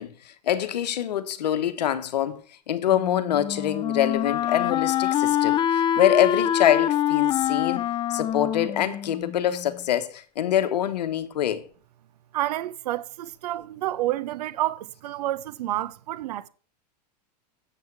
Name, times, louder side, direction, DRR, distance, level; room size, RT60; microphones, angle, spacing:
voice 1, 0.0-2.4 2.7-11.6, left 10 dB, 80° left, 1.1 m, -25 dB
Wind instrument woodwind instrument, 2.9-9.7, left 10 dB, 20° left, 0.4 m, -25 dB
voice 2, 12.3-16.5, right 14 dB, 70° right, 0.8 m, -29 dB
8.3 x 7.8 x 4.7 m
hypercardioid pair, 110°, 21 cm